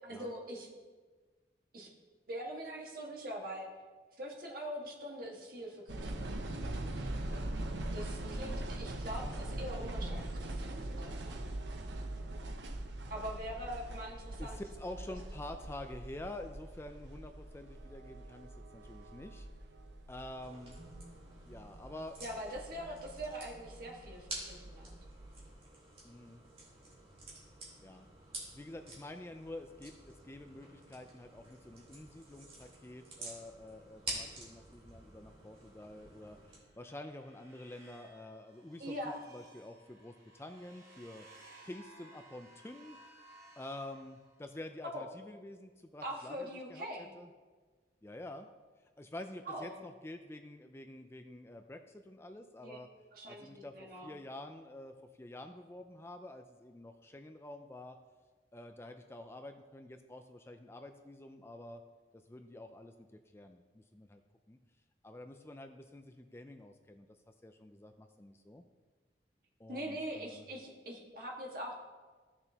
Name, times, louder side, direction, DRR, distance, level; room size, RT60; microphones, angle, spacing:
voice 1, 0.0-0.7 1.7-1.9 2.3-3.7 4.2-6.6 7.9-11.5 13.1-14.6 22.2-25.0 38.8-39.2 44.8-45.1 46.0-47.1 49.5-49.8 52.6-52.8 53.1-54.1 69.7-71.8, equal, 55° right, -1 dB, 1.8 m, -43 dB
sound 1, 5.9-25.5, right 1 dB, 85° right, 0.9 m, -42 dB
voice 2, 8.2-8.7 14.4-19.5 20.1-20.8 21.4-22.2 26.0-26.4 27.8-28.1 28.5-39.0 39.3-41.3 41.6-43.3 43.6-47.3 48.0-48.5 49.0-52.9 53.2-58.0 58.5-61.8 62.1-64.2 64.5-64.6 65.0-68.6 69.6-70.5, left 1 dB, 15° left, 7 dB, 0.4 m, -48 dB
sound 2, 20.4-36.6, right 2 dB, 35° right, 2.6 m, -49 dB
sound 3, 36.4-44.6, right 2 dB, 20° right, 1.5 m, -59 dB
15.0 x 6.8 x 2.9 m, 1.4 s
head